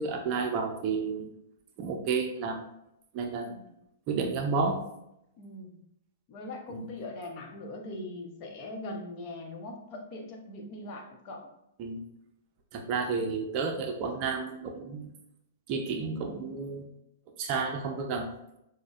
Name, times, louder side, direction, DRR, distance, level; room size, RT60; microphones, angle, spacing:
voice 1, 0.0-1.3 1.8-2.6 3.1-3.5 4.1-4.8 6.7-6.9 11.8-12.0 12.7-15.1 15.7-16.9 17.4-18.3, right 5 dB, 40° right, 3 dB, 0.5 m, -31 dB
voice 2, 5.4-5.8 6.3-11.5, left 2 dB, 40° left, 1 dB, 0.9 m, -41 dB
6.1 x 2.1 x 2.4 m, 0.81 s
figure-of-eight pair, 110°, 0 cm